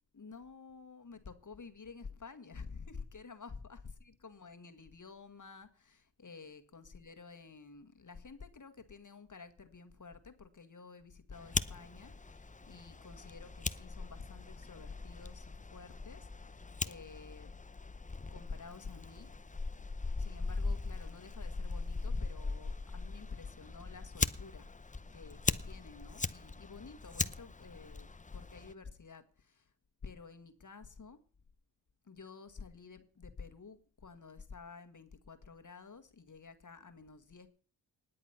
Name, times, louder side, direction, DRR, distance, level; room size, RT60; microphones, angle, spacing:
voice 1, 0.1-17.5 18.3-19.4 20.1-24.7 25.1-29.7 30.0-31.2 32.0-37.5, left 4 dB, 40° left, 1.7 m, -51 dB
Fire, 11.3-28.7, left 3 dB, 15° left, 0.8 m, -40 dB
19.0 x 8.5 x 5.8 m
supercardioid pair, 40°, 47 cm